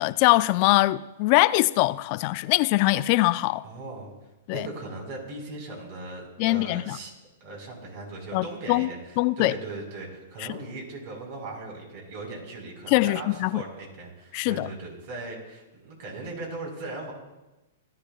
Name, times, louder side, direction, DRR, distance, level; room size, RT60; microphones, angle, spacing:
voice 1, 0.0-3.6 4.5-4.7 6.4-7.0 8.3-8.9 9.2-9.5 10.5-10.6 12.9-13.6 14.3-14.7, left 20 dB, 45° left, 0.3 m, -22 dB
voice 2, 3.6-4.1 4.5-7.1 7.4-17.1, right 2 dB, 55° right, 4.8 m, -38 dB
16.5 x 12.5 x 2.4 m
hypercardioid pair, 130°, 0 cm